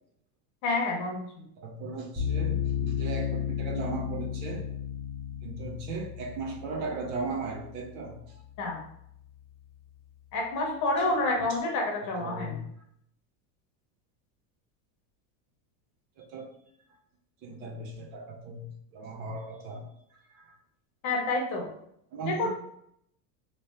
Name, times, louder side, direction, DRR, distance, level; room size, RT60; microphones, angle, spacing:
voice 1, 0.6-1.2 8.6-8.8 10.3-12.6 21.0-21.7 22.3-22.5, left 2 dB, 35° left, 0 dB, 0.8 m, -28 dB
voice 2, 1.6-4.6 5.4-8.2 12.2-12.6 16.2-16.5 17.4-19.9 20.3-20.4 22.1-22.5, right 3 dB, 55° right, 2 dB, 0.8 m, -37 dB
sound 1, 2.2-9.3, left 8 dB, ahead, 0.6 m, -34 dB
3.2 x 2.8 x 3.2 m, 0.71 s
supercardioid pair, 155°, 49 cm